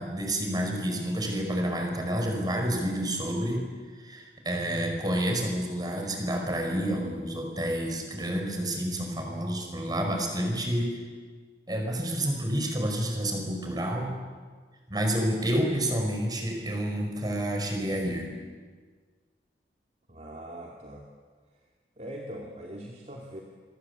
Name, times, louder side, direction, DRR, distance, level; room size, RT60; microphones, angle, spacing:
voice 1, 0.0-3.6 4.0-11.0 11.7-14.1 14.9-18.3, equal, 25° right, 2 dB, 5.2 m, -29 dB
voice 2, 20.1-21.1 22.0-23.4, equal, 40° right, -1 dB, 2.7 m, -41 dB
27.5 x 23.0 x 8.3 m, 1.5 s
head